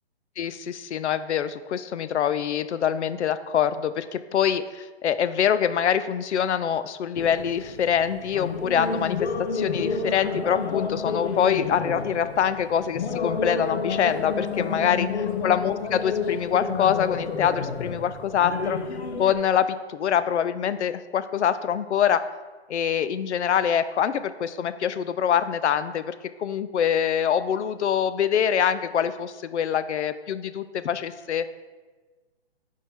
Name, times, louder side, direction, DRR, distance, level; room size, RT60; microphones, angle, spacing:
voice 1, 0.4-15.1 15.4-18.8 19.2-22.3 22.7-31.4, left 8 dB, 90° left, 13 dB, 0.5 m, -25 dB
sound 1, 7.1-19.4, left 5 dB, 70° left, 0.9 m, -30 dB
7.2 x 4.6 x 3.6 m, 1.3 s
hypercardioid pair, 165°, 33 cm